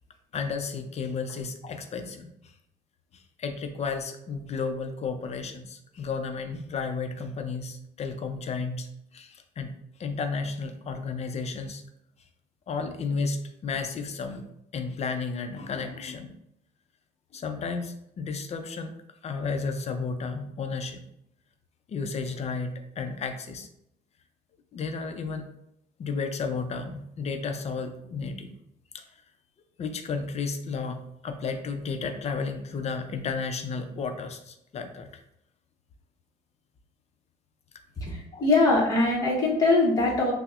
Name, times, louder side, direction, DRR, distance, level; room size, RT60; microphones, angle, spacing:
voice 1, 0.3-2.5 3.1-9.7 10.0-11.8 12.7-14.4 14.7-16.3 17.3-18.9 19.2-21.0 21.9-23.7 24.7-25.4 26.0-28.5 28.9-29.2 29.8-35.1 38.3-38.5, left 4 dB, 40° left, 7 dB, 0.5 m, -33 dB
voice 2, 38.0-40.3, left 2 dB, 20° left, -3 dB, 0.9 m, -22 dB
5.5 x 2.1 x 2.4 m, 0.79 s
cardioid pair, 110°, 17 cm